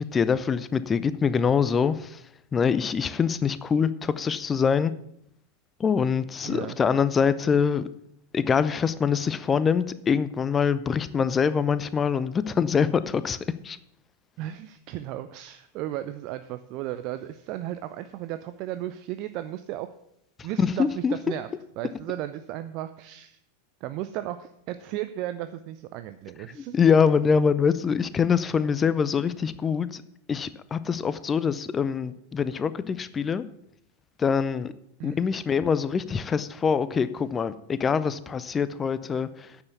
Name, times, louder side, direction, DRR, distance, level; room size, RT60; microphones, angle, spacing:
voice 1, 0.0-2.2 2.5-4.9 5.8-7.9 8.3-13.8 20.6-21.1 26.5-30.0 30.3-33.5 34.2-34.7 35.0-39.6, left 6 dB, 20° left, 15 dB, 0.5 m, -24 dB
voice 2, 6.4-6.8 14.4-19.9 20.4-21.5 21.8-23.4 23.8-26.8 35.0-35.3, right 13 dB, 40° right, 11 dB, 0.5 m, -35 dB
9.5 x 7.0 x 7.0 m, 0.76 s
figure-of-eight pair, 90°, 0 cm